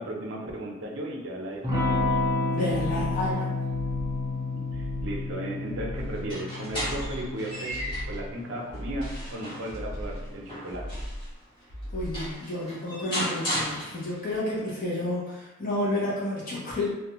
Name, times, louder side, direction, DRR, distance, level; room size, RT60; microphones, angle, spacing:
voice 1, 0.0-2.2 4.5-7.8 8.1-10.9, right 1 dB, 65° right, -1 dB, 0.5 m, -35 dB
Electric guitar / Strum, 1.6-9.9, left 3 dB, 20° right, 0.5 m, -31 dB
voice 2, 2.5-3.7 11.9-16.9, left 1 dB, 45° left, -7 dB, 0.8 m, -30 dB
sound 1, 4.7-5.3 5.7-6.3 6.7-7.3 7.7-8.3 8.7-9.3 9.7-10.3 10.7-11.3 11.7-12.3, equal, 75° left, 0.6 m, -37 dB
sound 2, 6.1-8.2 8.7-11.3 11.8-11.9 12.1-14.4, equal, 25° left, 1.1 m, -35 dB
2.5 x 2.2 x 2.9 m, 1.0 s
head